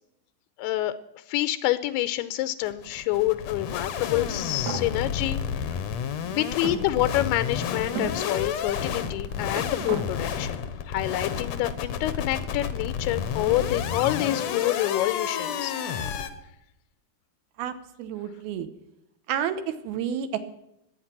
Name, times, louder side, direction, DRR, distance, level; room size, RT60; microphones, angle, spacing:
voice 1, 0.6-0.9 1.3-5.4 6.2-10.6 10.9-15.8, left 15 dB, 90° left, 12 dB, 2.8 m, -27 dB
sound 1, 2.7-16.3, left 7 dB, 75° left, 1.6 m, -31 dB
sound 2, 4.0-4.9 5.7-5.8 6.6-7.5 8.0-8.2 9.0-10.1, right 6 dB, 55° right, 2.6 m, -36 dB
voice 2, 17.6-18.7 19.3-20.4, right 9 dB, 75° right, 10 dB, 2.9 m, -30 dB
21.5 x 9.0 x 6.0 m, 0.82 s
omnidirectional pair, 4.5 m